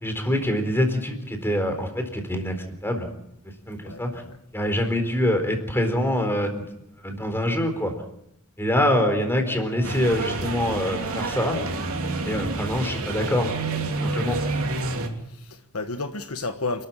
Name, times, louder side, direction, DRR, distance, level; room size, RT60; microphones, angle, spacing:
voice 1, 0.0-2.5 2.8-3.1 3.7-4.2 4.5-6.7 7.0-7.9 8.6-11.6 12.2-13.5 14.0-14.4, left 1 dB, 10° left, 4.2 m, -24 dB
voice 2, 3.8-4.4 15.2-16.9, left 3 dB, 70° left, 1.4 m, -32 dB
sound 1, 9.8-15.1, right 3 dB, 70° right, 3.4 m, -29 dB
28.5 x 13.5 x 9.0 m
head